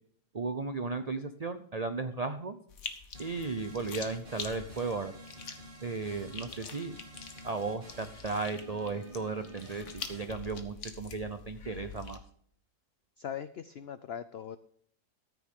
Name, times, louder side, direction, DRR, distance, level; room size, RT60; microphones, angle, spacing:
voice 1, 0.3-2.6 3.2-5.1 5.8-7.0 7.4-12.2, right 4 dB, 70° right, 9 dB, 0.3 m, -35 dB
sound 1, 2.7-12.2, left 6 dB, 50° left, 1.4 m, -46 dB
sound 2, 3.1-10.3, equal, 30° right, 3.2 m, -50 dB
voice 2, 13.2-14.6, left 8 dB, 90° left, 13 dB, 0.5 m, -40 dB
14.0 x 9.3 x 3.7 m, 0.63 s
omnidirectional pair, 1.7 m